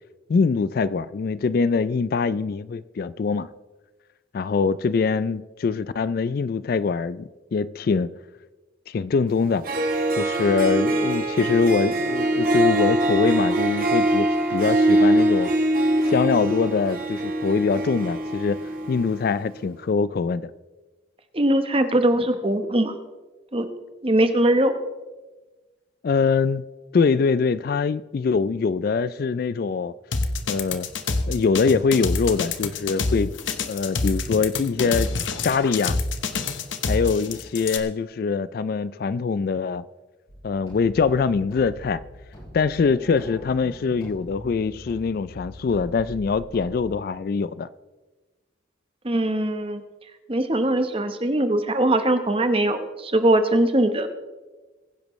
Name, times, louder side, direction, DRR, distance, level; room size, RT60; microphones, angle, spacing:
voice 1, 0.3-3.5 4.3-8.1 8.9-9.6 10.1-15.5 16.0-20.5 26.0-26.6 26.9-29.9 30.5-30.9 31.3-33.3 33.7-35.1 35.4-36.0 36.9-39.8 40.4-42.0 42.5-47.7, left 5 dB, 50° left, 0.3 m, -23 dB
Harp, 9.4-9.5 9.6-19.2, right 1 dB, 50° right, 1.8 m, -23 dB
voice 2, 21.3-23.0 23.5-23.7 24.0-24.7 49.0-49.8 50.3-54.1, right 1 dB, 30° right, 1.0 m, -21 dB
sound 1, 30.1-37.8, left 4 dB, 80° left, 1.0 m, -26 dB
sound 2, 40.3-46.8, equal, 30° left, 4.6 m, -42 dB
22.5 x 10.5 x 3.1 m
head